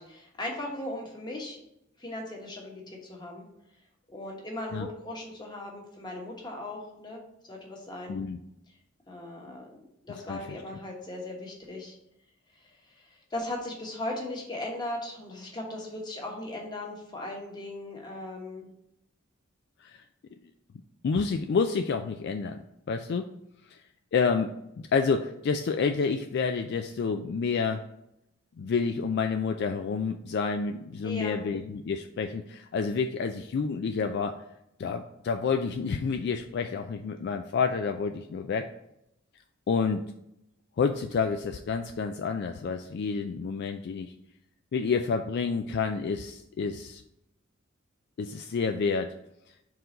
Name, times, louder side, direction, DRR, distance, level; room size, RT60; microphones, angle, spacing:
voice 1, 0.0-1.6 2.0-3.5 4.1-8.2 9.1-9.7 10.0-11.9 12.6-18.7 31.0-31.4, left 1 dB, 20° left, -1 dB, 1.3 m, -38 dB
voice 2, 8.1-8.4 10.3-10.4 19.8-20.0 21.0-22.6 22.9-23.3 23.6-23.8 24.1-24.5 24.9-27.8 28.6-34.4 34.8-38.7 39.7-40.0 40.8-44.1 44.7-47.0 48.2-49.1, left 5 dB, 50° left, 7 dB, 0.3 m, -29 dB
4.7 x 3.8 x 5.2 m, 0.82 s
head